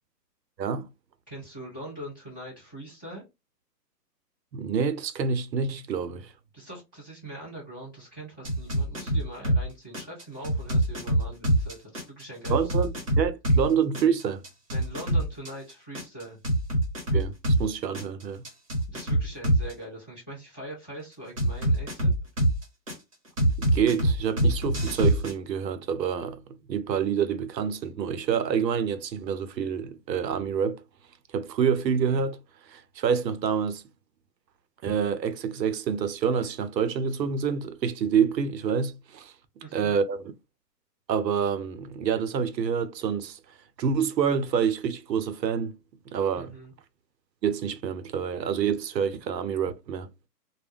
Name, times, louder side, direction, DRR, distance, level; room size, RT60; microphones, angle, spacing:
voice 1, 1.3-3.2 6.5-12.9 14.7-16.4 18.9-22.1 39.6-39.9 46.4-46.7, right 1 dB, 15° left, 0.6 m, -42 dB
voice 2, 4.5-6.3 12.5-14.4 17.1-17.3 17.6-18.4 23.7-26.4 26.7-30.8 31.3-32.4 32.7-33.8 34.8-39.3 39.7-40.3 41.1-43.4 43.8-45.7 46.1-46.5 47.4-50.1, right 7 dB, 85° right, 0.7 m, -27 dB
sound 1, 8.4-9.6 9.9-13.6 13.9-17.6 17.9-19.7 21.4-22.9 23.4-25.3, right 1 dB, 20° right, 0.8 m, -24 dB
2.3 x 2.1 x 3.3 m
hypercardioid pair, 165°, 50 cm